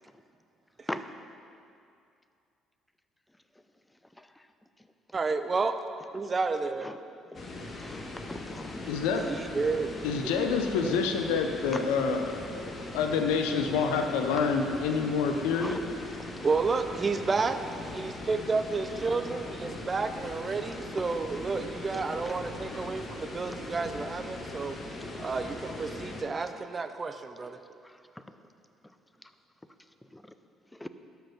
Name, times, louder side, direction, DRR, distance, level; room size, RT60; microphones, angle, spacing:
voice 1, 5.1-5.7 6.1-6.9 9.3-9.9 10.2-10.3 10.8-11.0 11.3-11.4 11.7-11.8 16.4-17.6 17.8-24.8 25.2-27.6, right 4 dB, 35° right, 9 dB, 0.6 m, -31 dB
sound 1, 7.3-26.2, left 2 dB, 35° left, 1.5 m, -40 dB
voice 2, 7.8-8.7 11.7-11.8 15.5-15.8 21.9-22.4 22.7-22.8 24.8-25.1 27.4-27.9 28.3-28.4 30.1-30.2 30.7-30.9, left 1 dB, 10° left, 10 dB, 0.6 m, -41 dB
voice 3, 8.9-9.3 10.0-12.4 12.9-15.8, left 5 dB, 70° left, 5 dB, 0.8 m, -27 dB
12.5 x 5.9 x 5.4 m, 2.5 s
hypercardioid pair, 50°, 0 cm